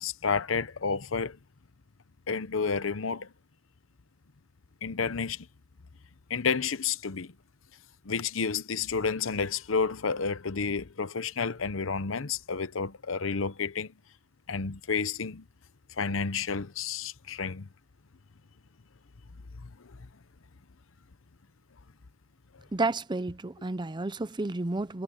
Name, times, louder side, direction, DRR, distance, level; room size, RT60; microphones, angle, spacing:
voice 1, 0.0-1.4 2.3-3.3 4.8-5.5 6.3-7.3 8.0-13.9 14.5-15.4 16.0-17.7, left 5 dB, 75° left, 0.9 m, -30 dB
voice 2, 22.7-25.0, right 3 dB, 25° right, 0.6 m, -31 dB
head